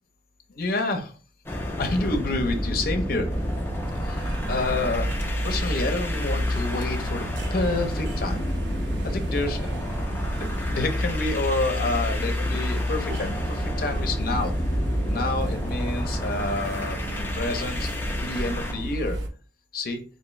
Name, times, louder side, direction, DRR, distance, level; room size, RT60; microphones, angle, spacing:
voice 1, 0.5-1.1 1.8-3.3 4.0-7.3 7.5-8.4 9.0-9.9 10.2-14.5 15.1-17.9 18.2-19.2 19.7-20.0, left 2 dB, 55° left, 6 dB, 0.6 m, -29 dB
sound 1, 1.4-18.8, left 1 dB, 15° left, 0.4 m, -31 dB
sound 2, 3.3-19.3, equal, 85° right, 0.5 m, -30 dB
3.5 x 2.7 x 3.1 m, 0.39 s
head